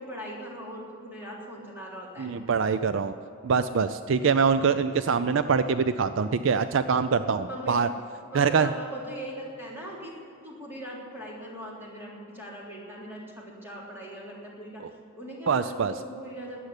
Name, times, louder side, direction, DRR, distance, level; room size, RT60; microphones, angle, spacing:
voice 1, 0.0-2.3 7.5-8.0 8.3-10.1 10.4-14.8 15.1-16.7, equal, 10° right, -4 dB, 3.4 m, -40 dB
voice 2, 2.2-3.1 3.4-7.9 8.3-8.7 15.5-15.9, right 5 dB, 60° right, 12 dB, 0.4 m, -24 dB
13.0 x 9.3 x 9.8 m, 2.6 s
head